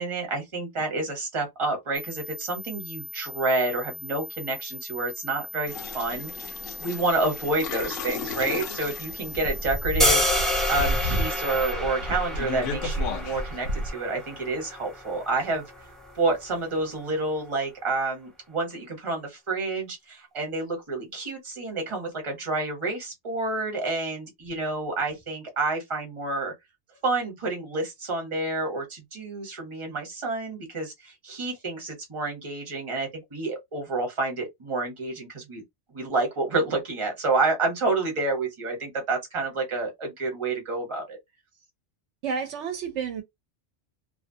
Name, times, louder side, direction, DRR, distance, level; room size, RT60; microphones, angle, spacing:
voice 1, 0.0-6.5 6.8-15.7 16.1-26.5 27.0-35.6 35.9-41.2, right 2 dB, 30° right, 0.9 m, -29 dB
sound 1, 1.9-11.7, equal, 60° left, 0.4 m, -40 dB
sound 2, 5.7-13.9, left 1 dB, 85° left, 1.0 m, -32 dB
sound 3, 10.0-16.1, equal, ahead, 0.5 m, -29 dB
voice 2, 42.2-43.2, right 6 dB, 75° right, 0.9 m, -30 dB
2.6 x 2.1 x 2.6 m
omnidirectional pair, 1.2 m